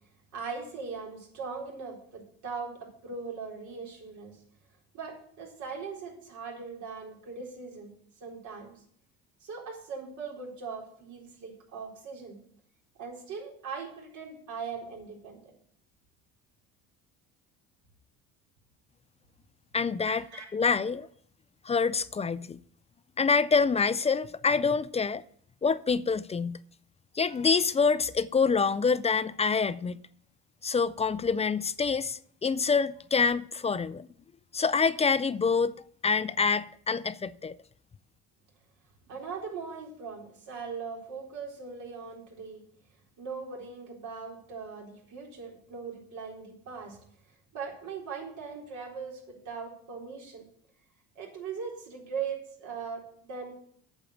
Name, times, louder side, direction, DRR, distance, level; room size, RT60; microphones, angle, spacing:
voice 1, 0.3-4.4 4.9-7.9 8.2-8.8 9.4-12.4 13.0-15.5 20.1-20.5 39.0-42.6 43.2-47.0 47.5-50.5 51.2-53.5, right 5 dB, 65° right, 4.2 m, -40 dB
voice 2, 19.7-20.2 20.5-21.1 21.7-22.6 23.2-25.2 25.6-26.6 27.2-30.0 30.6-34.1 34.5-35.7 36.0-37.6, left 5 dB, 20° left, 0.4 m, -26 dB
8.6 x 7.3 x 8.3 m
cardioid pair, 110°, 32 cm